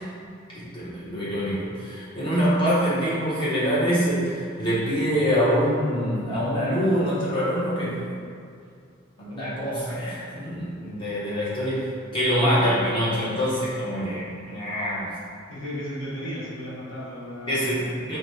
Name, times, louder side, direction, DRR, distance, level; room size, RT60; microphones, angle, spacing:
voice 1, 0.5-8.0 9.2-15.1 17.5-18.2, equal, 25° left, -9 dB, 1.0 m, -25 dB
voice 2, 15.5-18.0, equal, 75° left, -7 dB, 1.1 m, -35 dB
3.9 x 2.8 x 3.3 m, 2.3 s
head